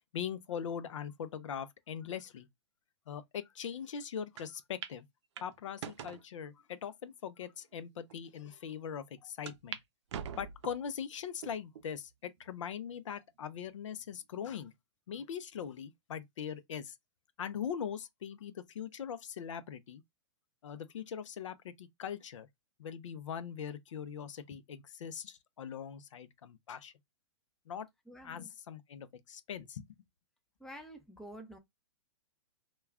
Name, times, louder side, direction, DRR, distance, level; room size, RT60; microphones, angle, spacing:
voice 1, 0.1-2.5 3.1-5.1 5.4-9.8 10.4-14.7 15.1-16.9 17.4-20.0 20.6-22.5 22.8-26.9 27.7-27.9 28.2-29.9, left 8 dB, 80° left, 0.5 m, -41 dB
sound 1, 4.4-4.5 4.8-5.0 5.4-6.2 6.9-7.0 7.7-7.8 8.1-8.2 9.5-9.8 10.1-10.9 11.4-11.9 12.4-12.5 13.6-14.1, right 8 dB, 65° right, 0.5 m, -44 dB
voice 2, 28.1-28.5 30.6-31.6, equal, 5° left, 0.5 m, -49 dB
2.3 x 2.2 x 3.4 m
hypercardioid pair, 130°, 16 cm